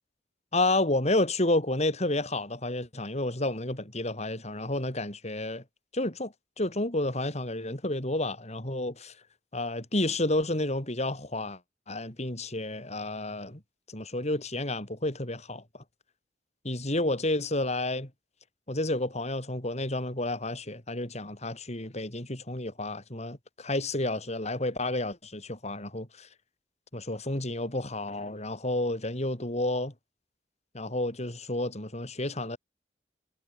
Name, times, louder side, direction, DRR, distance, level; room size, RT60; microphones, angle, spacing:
voice 1, 0.5-5.6 5.9-9.2 9.5-11.6 11.9-13.6 13.9-15.8 16.6-18.1 18.7-26.3 26.9-29.9 30.7-32.6, left 2 dB, 40° left, 4.4 m, -30 dB
head